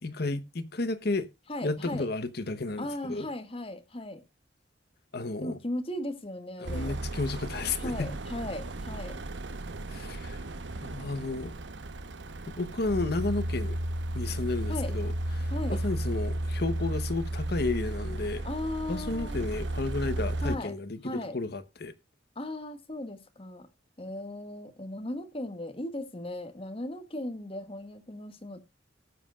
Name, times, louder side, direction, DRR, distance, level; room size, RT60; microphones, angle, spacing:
voice 1, 0.0-1.3 1.6-3.3 5.1-5.6 6.6-8.1 9.9-10.4 10.8-11.5 12.5-13.8 14.1-15.1 15.4-18.5 18.9-21.9, left 3 dB, 60° left, 1.0 m, -32 dB
voice 2, 1.5-2.1 2.8-4.2 5.4-7.0 7.8-9.2 14.7-14.9 15.5-15.8 18.4-19.4 20.4-20.7 21.0-21.4 22.3-23.7 24.0-28.6, left 1 dB, 30° left, 1.7 m, -37 dB
sound 1, 6.6-20.6, right 1 dB, 75° right, 0.9 m, -34 dB
18.0 x 7.5 x 2.4 m
head